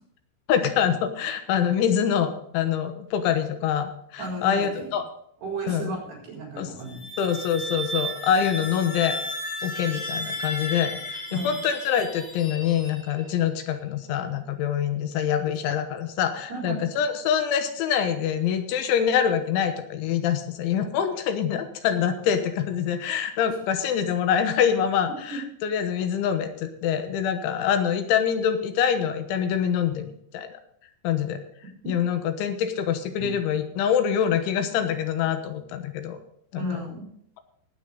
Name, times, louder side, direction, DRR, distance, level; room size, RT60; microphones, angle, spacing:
voice 1, 0.5-5.0 5.7-6.0 6.6-6.7 7.2-9.2 9.6-30.6 31.0-31.4 31.9-36.2 36.5-36.7, left 8 dB, 85° left, 8 dB, 3.6 m, -25 dB
voice 2, 4.2-4.9 5.4-7.1 11.3-11.5 16.5-16.8 33.2-33.3 36.6-37.1, right 2 dB, 60° right, -2 dB, 5.8 m, -33 dB
sound 1, 6.8-13.4, equal, 35° left, 1.4 m, -34 dB
17.5 x 9.2 x 4.0 m, 0.69 s
omnidirectional pair, 5.4 m